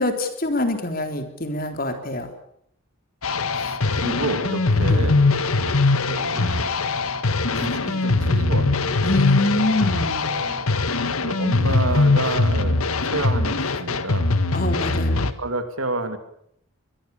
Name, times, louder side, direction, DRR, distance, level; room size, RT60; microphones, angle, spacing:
voice 1, 0.0-2.3 4.9-5.1 9.0-10.3 14.5-15.3, left 2 dB, 40° left, 6 dB, 3.8 m, -25 dB
sound 1, 3.2-15.3, left 3 dB, 85° left, 1.7 m, -21 dB
voice 2, 3.5-5.2 6.1-6.8 7.5-9.1 10.3-10.7 11.2-12.8 13.0-14.3 15.2-16.2, right 2 dB, 75° right, 8 dB, 3.0 m, -30 dB
23.0 x 22.0 x 7.1 m, 0.72 s
head